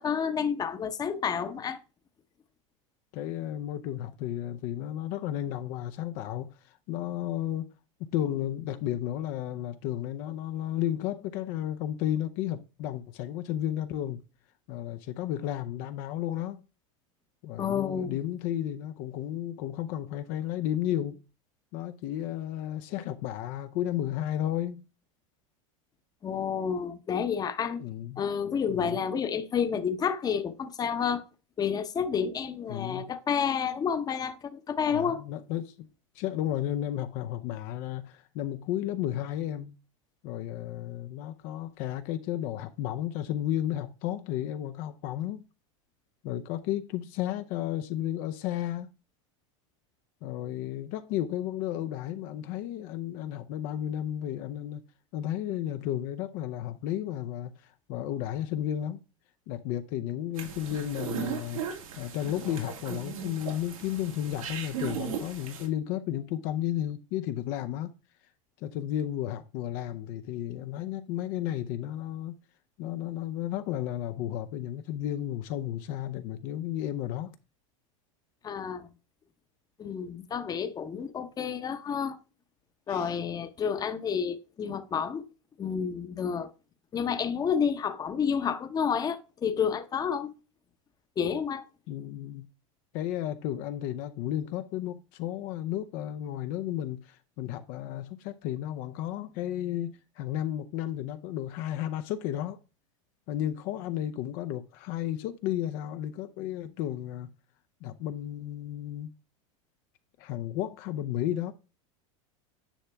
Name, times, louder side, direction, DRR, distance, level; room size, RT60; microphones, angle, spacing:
voice 1, 0.0-1.8 17.6-18.2 26.2-27.8 28.2-31.2 31.6-35.2 78.4-78.9 79.8-82.2 82.9-85.2 85.6-86.5 86.9-90.3 91.2-91.6, left 7 dB, 20° left, 0.9 m, -30 dB
voice 2, 3.1-7.7 8.0-14.2 14.7-16.6 17.4-21.2 21.7-24.8 27.8-28.2 28.7-29.0 32.7-33.1 34.9-35.9 36.1-39.7 40.2-45.4 46.2-48.9 50.2-54.8 55.1-59.0 59.5-61.6 62.0-67.9 68.6-72.4 72.8-77.3 82.9-83.2 91.9-92.5 92.9-102.6 103.3-107.3 107.8-109.1 110.2-111.5, left 12 dB, 55° left, 0.7 m, -33 dB
sound 1, 60.4-65.7, right 7 dB, 90° right, 2.6 m, -37 dB
10.0 x 5.6 x 3.4 m
supercardioid pair, 120°, 17 cm